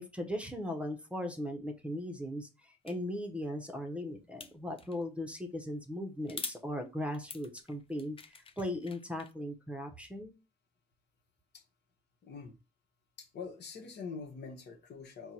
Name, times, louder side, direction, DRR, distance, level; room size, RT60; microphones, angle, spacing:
voice 1, 0.0-8.2 8.6-10.3, left 1 dB, 5° right, 0.8 m, -38 dB
sound 1, 2.9-3.0 4.4-5.0 6.3-6.6 7.1-9.3, left 5 dB, 30° left, 0.4 m, -45 dB
voice 2, 12.2-12.5 13.2-15.3, left 5 dB, 65° left, 1.0 m, -44 dB
4.5 x 2.2 x 4.1 m
cardioid pair, 80°, 19 cm